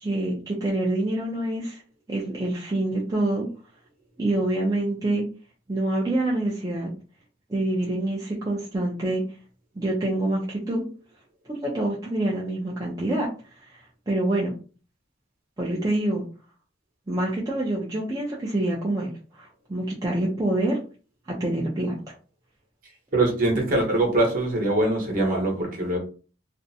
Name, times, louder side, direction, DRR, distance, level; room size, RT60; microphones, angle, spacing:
voice 1, 0.0-1.8 2.1-3.5 4.2-5.2 5.7-6.9 7.5-9.2 9.8-10.9 11.5-13.3 13.6-14.5 15.6-16.2 17.1-19.1 19.4-20.8 21.3-22.1, right 1 dB, 20° right, -4 dB, 0.5 m, -26 dB
voice 2, 23.1-26.0, right 2 dB, 45° right, -1 dB, 0.9 m, -23 dB
2.5 x 2.1 x 2.6 m, 0.36 s
head